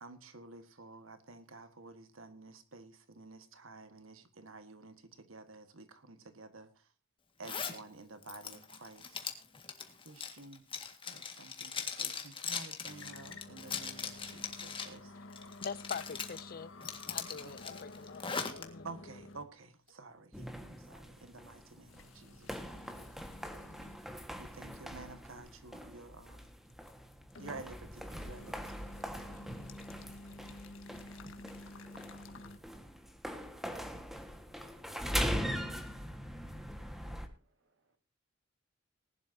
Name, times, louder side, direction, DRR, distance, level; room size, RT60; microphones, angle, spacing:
voice 1, 0.0-4.9 5.3-6.7 7.4-9.3 10.0-10.6 11.1-15.1 17.4-17.5 18.8-23.3 24.4-26.4 27.4-28.5 29.2-29.4, right 3 dB, 90° right, 1.7 m, -51 dB
Zipper (clothing), 7.4-7.8 8.2-15.0 15.3-16.4 16.8-18.6, left 6 dB, 25° left, 1.8 m, -40 dB
sound 1, 12.8-19.5 19.9-20.0 20.7-20.8 21.9-24.0 24.5-24.6 26.7-27.8 28.1-32.6, left 2 dB, 75° left, 1.5 m, -51 dB
voice 2, 15.6-16.7 17.1-18.2 18.6-19.0, left 6 dB, 45° left, 0.6 m, -43 dB
sound 2, 20.3-37.3, equal, ahead, 1.6 m, -41 dB
voice 3, 37.3-38.0, right 2 dB, 65° right, 2.1 m, -76 dB
19.5 x 11.5 x 2.8 m
head